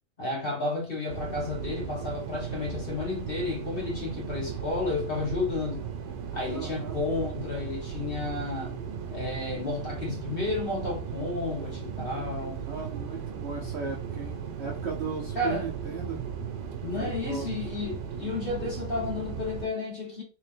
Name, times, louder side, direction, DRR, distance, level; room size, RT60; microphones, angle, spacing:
voice 1, 0.2-5.8 6.3-8.8 9.1-12.6 15.3-15.7 16.8-20.2, left 3 dB, 35° left, 1.2 m, -32 dB
sound 1, 1.1-19.7, right 7 dB, 85° right, 1.3 m, -36 dB
voice 2, 6.5-7.0 12.6-16.3 17.0-17.7, right 5 dB, 55° right, 0.7 m, -36 dB
3.5 x 3.1 x 3.3 m
omnidirectional pair, 1.9 m